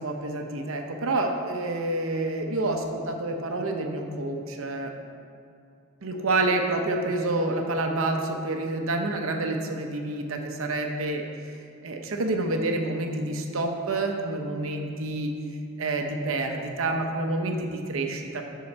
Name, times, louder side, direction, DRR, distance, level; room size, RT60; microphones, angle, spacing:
voice 1, 0.0-4.9 6.0-11.3 11.8-15.3 15.8-18.5, right 2 dB, 75° right, 3 dB, 0.7 m, -28 dB
10.5 x 3.8 x 4.3 m, 2.4 s
head